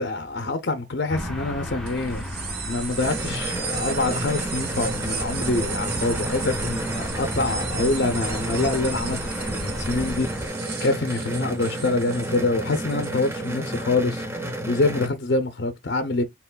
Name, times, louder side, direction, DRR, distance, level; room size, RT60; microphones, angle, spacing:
voice 1, 0.0-2.2 2.7-9.2 9.5-10.3 10.8-16.2, left 2 dB, 55° left, 0.6 m, -25 dB
sound 1, 1.1-10.5, equal, ahead, 1.1 m, -34 dB
sound 2, 1.9-13.8, right 6 dB, 55° right, 0.9 m, -35 dB
sound 3, 3.0-15.1, right 1 dB, 15° right, 0.7 m, -31 dB
4.6 x 3.5 x 2.2 m
head